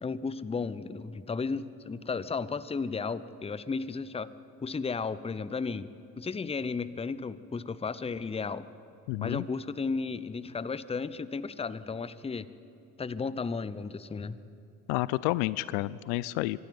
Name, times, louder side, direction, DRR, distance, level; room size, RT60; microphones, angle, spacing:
voice 1, 0.0-4.3 4.6-5.9 6.2-8.7 9.2-12.5 13.0-14.4, left 4 dB, 10° left, 17 dB, 0.7 m, -34 dB
voice 2, 9.1-9.4 14.9-16.6, left 18 dB, 60° left, 20 dB, 0.6 m, -30 dB
25.0 x 12.0 x 9.3 m, 2.8 s
figure-of-eight pair, 55°, 50 cm